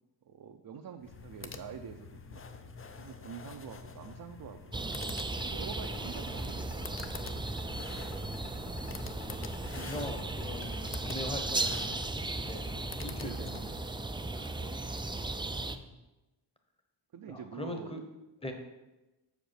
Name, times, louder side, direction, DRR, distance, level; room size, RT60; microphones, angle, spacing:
voice 1, 0.3-4.7 5.4-7.2 12.8-12.9 13.2-13.7 14.5-14.9 17.1-18.0, right 7 dB, 55° right, 4 dB, 0.6 m, -47 dB
sound 1, 1.0-14.0, left 5 dB, 30° left, 0.6 m, -47 dB
sound 2, 4.7-15.8, right 2 dB, 10° right, 0.4 m, -36 dB
sound 3, 5.2-12.1, left 5 dB, 80° left, 1.2 m, -48 dB
voice 2, 5.9-6.5 8.9-9.2 9.6-12.7 13.0-13.6 14.3-14.6 14.9-15.9 17.3-18.0 18.4-18.5, left 1 dB, 15° left, 4 dB, 1.1 m, -43 dB
7.0 x 5.1 x 6.5 m, 1.0 s
wide cardioid pair, 110°, 42 cm